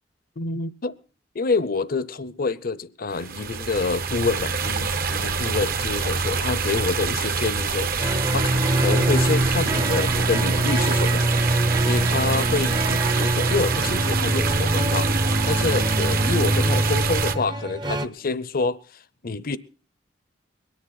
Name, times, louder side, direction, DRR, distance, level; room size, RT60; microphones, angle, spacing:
voice 1, 0.4-1.0 1.3-11.3 11.8-19.6, left 4 dB, 50° left, 0.7 m, -27 dB
sound 1, 3.1-17.4, right 5 dB, 50° right, 0.9 m, -26 dB
sound 2, 8.0-18.1, right 1 dB, 25° right, 0.7 m, -24 dB
22.5 x 10.5 x 4.1 m
head